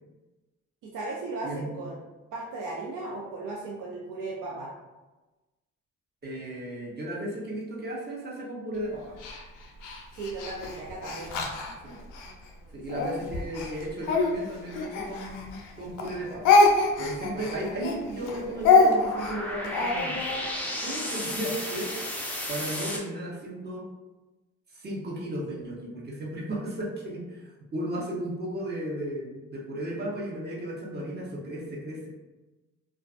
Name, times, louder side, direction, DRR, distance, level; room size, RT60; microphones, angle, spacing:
voice 1, 0.8-2.0 2.3-4.7 10.1-11.3 12.9-13.0, right 3 dB, 90° right, -4 dB, 0.5 m, -36 dB
voice 2, 1.4-1.8 6.2-9.2 11.8-12.0 12.7-16.6 17.0-20.2 20.8-22.0 22.5-23.8 24.7-32.1, right 1 dB, 35° right, -4 dB, 0.8 m, -35 dB
Speech, 9.2-12.3 12.9-15.7 16.0-20.4, left 3 dB, 90° left, 0.5 m, -25 dB
sound 1, 15.8-15.9 16.9-17.0 17.2-23.0, left 1 dB, 5° left, 0.4 m, -35 dB
2.4 x 2.3 x 2.4 m, 1.1 s
cardioid pair, 90°, 30 cm